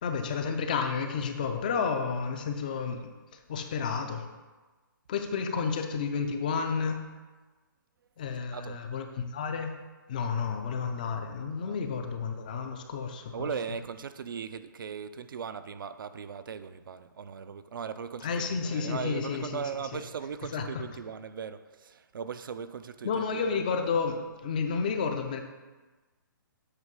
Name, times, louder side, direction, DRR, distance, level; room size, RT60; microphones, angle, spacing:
voice 1, 0.0-4.3 5.1-7.0 8.2-9.7 10.1-13.5 18.2-19.6 19.9-20.0 20.5-20.8 23.0-25.4, left 5 dB, 25° left, 0.4 m, -31 dB
voice 2, 13.3-23.5, right 6 dB, 70° right, 0.4 m, -38 dB
8.1 x 3.1 x 5.2 m
hypercardioid pair, 170°, 11 cm